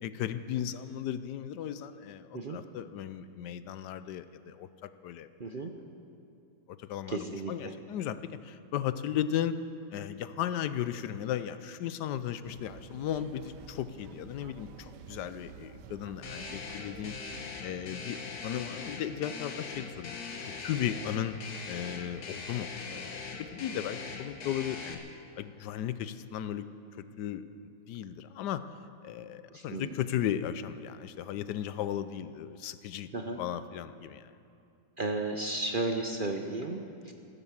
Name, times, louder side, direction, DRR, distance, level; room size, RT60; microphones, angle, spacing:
voice 1, 0.0-5.3 6.8-9.6 9.9-17.2 17.6-20.2 20.4-21.4 21.7-25.0 25.4-26.7 26.9-28.6 29.0-33.1 33.4-34.3, left 10 dB, 85° left, 13 dB, 1.2 m, -36 dB
voice 2, 5.4-5.7 7.1-7.7 29.5-30.0 33.1-33.4 35.0-37.1, right 2 dB, 45° right, 4 dB, 0.7 m, -34 dB
sound 1, 12.4-17.4, right 7 dB, 85° right, 1.3 m, -50 dB
sound 2, 16.2-24.9, left 4 dB, 65° left, 1.7 m, -41 dB
15.0 x 12.5 x 7.2 m, 2.5 s
omnidirectional pair, 1.8 m